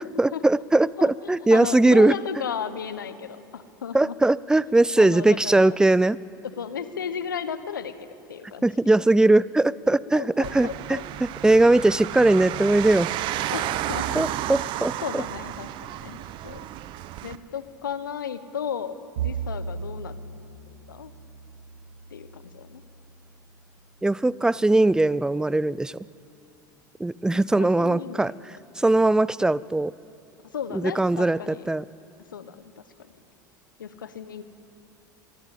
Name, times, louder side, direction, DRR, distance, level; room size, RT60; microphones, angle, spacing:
voice 1, 0.0-2.1 3.9-6.2 8.6-11.0 11.4-13.1 14.1-15.2 24.0-26.0 27.0-28.3 28.8-29.9 30.7-31.8, right 2 dB, 5° right, 21 dB, 0.5 m, -20 dB
voice 2, 1.0-4.1 5.0-5.7 6.5-8.7 10.1-11.0 13.5-14.3 15.0-16.6 17.2-20.2 20.9-21.1 22.1-22.8 27.6-28.4 30.5-31.7 32.3-32.8 33.8-34.4, left 7 dB, 80° left, 12 dB, 1.3 m, -34 dB
sound 1, 10.4-17.4, right 13 dB, 50° right, 1.0 m, -32 dB
Bowed string instrument, 19.2-23.5, right 6 dB, 75° right, 0.9 m, -36 dB
25.0 x 21.5 x 8.6 m, 2.6 s
hypercardioid pair, 75°, 11 cm